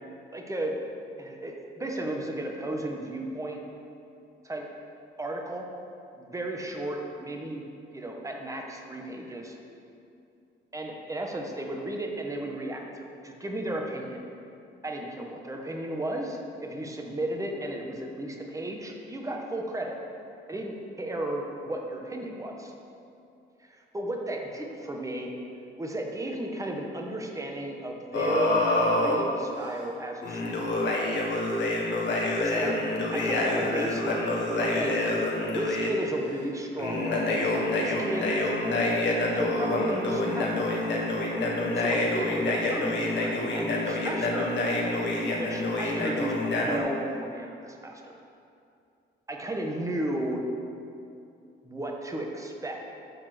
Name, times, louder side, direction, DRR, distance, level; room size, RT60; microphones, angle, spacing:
voice 1, 0.3-0.7 1.2-3.6 4.4-4.6 5.2-5.7 6.1-7.6 7.9-9.5 10.7-14.2 14.8-20.0 20.5-22.7 23.6-25.3 25.8-30.7 32.4-32.7 33.1-34.9 35.5-37.4 37.7-38.3 39.3-40.5 41.7-44.5 45.3-48.1 49.3-50.4 51.6-52.9, right 1 dB, 15° right, 1 dB, 1.4 m, -34 dB
sound 1, 28.1-29.2 30.2-35.9 36.8-46.8, left 2 dB, 65° left, 1.7 m, -27 dB
13.0 x 4.5 x 6.1 m, 2.6 s
cardioid pair, 90°, 20 cm